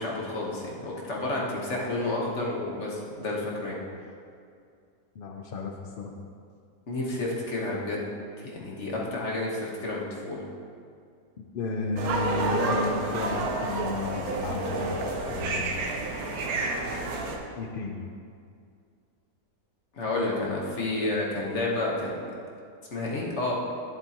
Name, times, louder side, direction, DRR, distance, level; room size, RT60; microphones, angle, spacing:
voice 1, 0.0-3.8 6.9-8.1 8.4-10.4 19.9-22.1 22.9-23.5, left 2 dB, 45° left, -3 dB, 1.5 m, -30 dB
voice 2, 5.2-6.1 11.5-15.0 15.3-15.8 17.6-18.0 20.1-20.6 20.9-21.1, left 3 dB, 90° left, 1 dB, 0.4 m, -33 dB
sound 1, 12.0-17.4, right 2 dB, 70° right, 1.3 m, -29 dB
11.0 x 7.4 x 3.0 m, 2.3 s
omnidirectional pair, 1.7 m